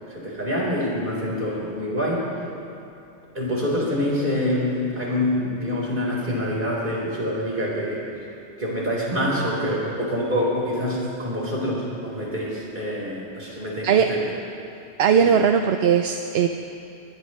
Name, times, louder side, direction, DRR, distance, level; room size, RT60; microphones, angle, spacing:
voice 1, 0.1-2.2 3.3-8.3 8.6-14.2 15.2-15.3, left 1 dB, 45° right, -5 dB, 4.5 m, -26 dB
voice 2, 15.0-16.5, right 7 dB, 65° right, 6 dB, 0.8 m, -18 dB
22.0 x 19.5 x 3.2 m, 2.7 s
omnidirectional pair, 1.2 m